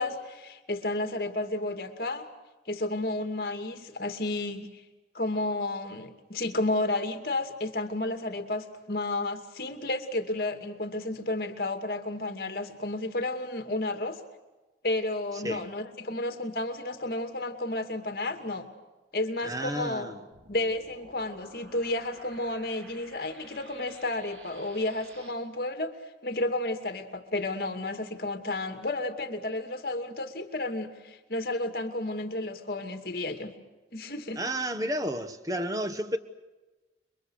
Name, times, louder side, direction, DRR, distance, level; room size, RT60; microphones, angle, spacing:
voice 1, 0.0-2.3 2.7-4.7 5.1-14.2 14.8-18.7 19.1-20.1 20.5-25.9 26.2-33.5 33.9-34.4, left 2 dB, 55° left, 2.6 m, -32 dB
voice 2, 15.3-15.7 19.4-20.2 34.4-36.2, right 1 dB, 20° right, 1.4 m, -31 dB
sound 1, 20.3-25.3, right 2 dB, 90° right, 4.1 m, -52 dB
29.0 x 23.5 x 6.5 m
head